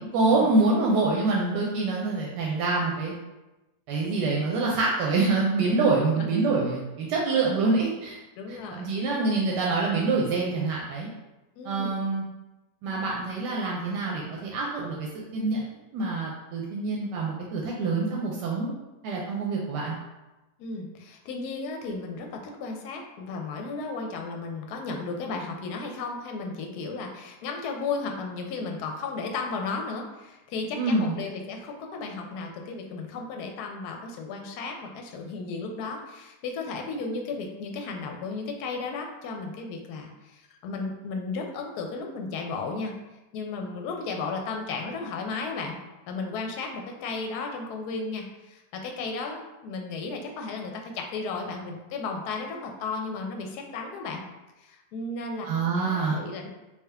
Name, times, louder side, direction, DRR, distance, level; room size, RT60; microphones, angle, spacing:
voice 1, 0.1-3.1 3.9-8.2 8.5-11.1 11.6-12.2 12.8-15.6 15.9-18.7 19.0-20.0 30.8-31.2 55.4-56.2, right 3 dB, 85° right, -2 dB, 1.2 m, -26 dB
voice 2, 8.4-8.9 11.6-11.9 20.6-43.0 43.3-45.8 46.1-54.2 54.6-55.5 55.8-56.5, left 4 dB, 75° left, 2 dB, 1.1 m, -34 dB
3.6 x 2.7 x 3.3 m, 1.0 s
omnidirectional pair, 1.8 m